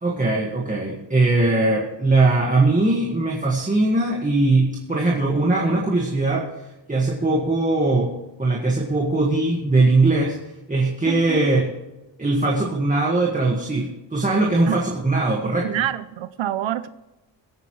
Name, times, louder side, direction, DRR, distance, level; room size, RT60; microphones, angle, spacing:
voice 1, 0.0-6.5 6.9-10.4 10.7-11.7 12.2-15.7, right 2 dB, 15° right, -2 dB, 1.7 m, -20 dB
voice 2, 11.1-11.5 14.7-14.8 15.6-16.9, right 12 dB, 85° right, 14 dB, 0.7 m, -26 dB
22.5 x 9.2 x 3.2 m, 1.0 s
wide cardioid pair, 170°, 46 cm